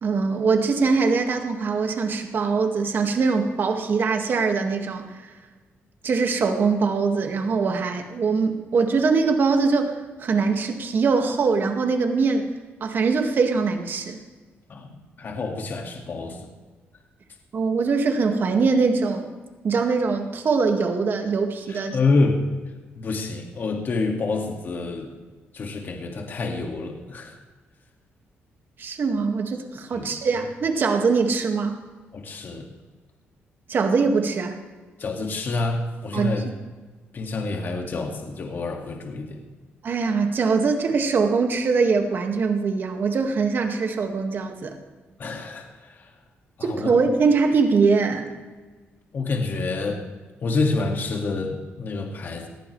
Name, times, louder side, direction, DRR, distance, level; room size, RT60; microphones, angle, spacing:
voice 1, 0.0-5.1 6.0-12.5 12.8-14.2 17.5-19.3 19.6-22.0 28.8-31.8 33.7-34.6 36.1-36.3 39.8-44.8 46.6-48.3, right 4 dB, 55° right, 4 dB, 2.1 m, -22 dB
voice 2, 14.7-16.5 21.7-22.4 23.0-25.1 25.5-27.4 29.9-30.1 32.1-32.7 35.0-36.5 37.1-39.4 45.2-46.1 46.6-46.9 49.1-50.1 50.4-52.5, left 3 dB, 50° left, 2 dB, 2.2 m, -27 dB
19.5 x 14.5 x 3.4 m, 1.3 s
cardioid pair, 95°, 4 cm